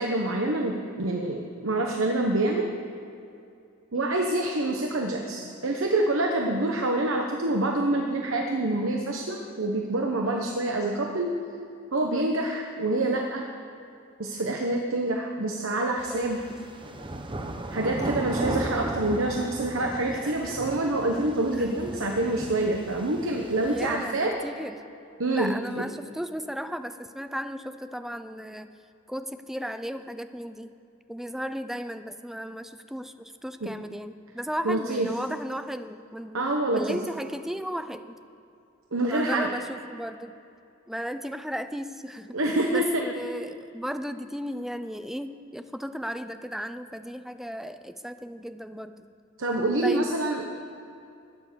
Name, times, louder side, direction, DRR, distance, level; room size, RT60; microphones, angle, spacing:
voice 1, 0.0-2.7 3.9-11.3 11.9-13.5 14.2-16.4 17.7-24.3 25.2-25.8 33.6-33.7 34.6-35.1 36.3-37.0 38.9-39.5 42.3-43.0 49.4-50.4, right 2 dB, 70° right, 2 dB, 1.1 m, -26 dB
sound 1, 16.0-24.0, right 1 dB, 25° right, 0.8 m, -36 dB
voice 2, 16.1-16.4 20.1-20.6 21.5-21.9 23.7-24.8 25.3-28.7 29.1-30.7 31.1-36.4 36.7-38.2 39.0-40.3 40.9-42.4 42.7-49.1 49.8-50.1, equal, ahead, 10 dB, 0.5 m, -35 dB
13.5 x 9.9 x 6.8 m, 2.6 s
head